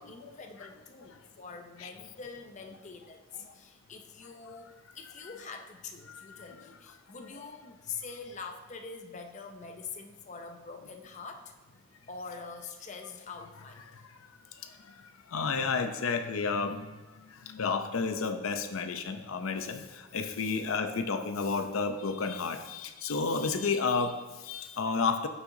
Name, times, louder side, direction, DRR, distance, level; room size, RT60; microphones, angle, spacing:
voice 1, 0.0-4.7 4.9-11.5 12.1-14.0 19.5-19.7 20.1-20.5 21.5-21.7, left 5 dB, 35° left, 5 dB, 0.6 m, -45 dB
voice 2, 6.1-6.7 7.3-7.4 15.3-16.9 17.3-25.3, left 4 dB, 90° left, 8 dB, 0.6 m, -31 dB
9.5 x 5.8 x 2.7 m, 1.2 s
head